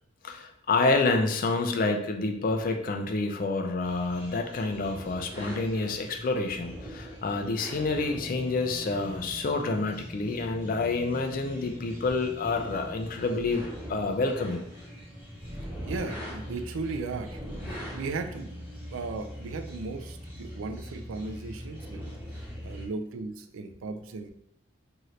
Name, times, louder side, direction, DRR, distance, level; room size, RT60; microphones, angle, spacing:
voice 1, 0.2-13.6 13.9-14.7, left 3 dB, 45° left, 4 dB, 0.3 m, -28 dB
sound 1, 3.8-22.9, equal, 10° right, 0.8 m, -41 dB
voice 2, 15.9-17.4 17.9-18.6 18.9-22.1 22.4-24.3, right 3 dB, 75° right, 7 dB, 0.3 m, -36 dB
2.8 x 2.5 x 3.1 m, 0.72 s
head